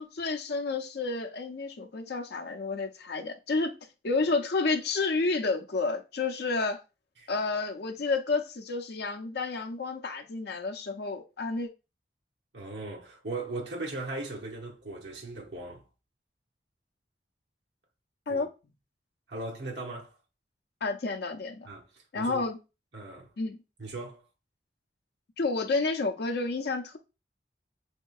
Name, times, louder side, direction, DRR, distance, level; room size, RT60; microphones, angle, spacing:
voice 1, 0.0-3.8 4.0-6.8 7.3-11.7 18.3-18.5 20.8-21.7 22.1-22.6 23.4-23.6 25.4-27.0, left 3 dB, 60° left, 0.6 m, -30 dB
voice 2, 12.5-15.8 18.3-18.4 19.3-20.1 21.7-22.5 22.9-23.3 23.8-24.2, right 2 dB, 70° right, 1.0 m, -38 dB
3.6 x 2.8 x 2.3 m
head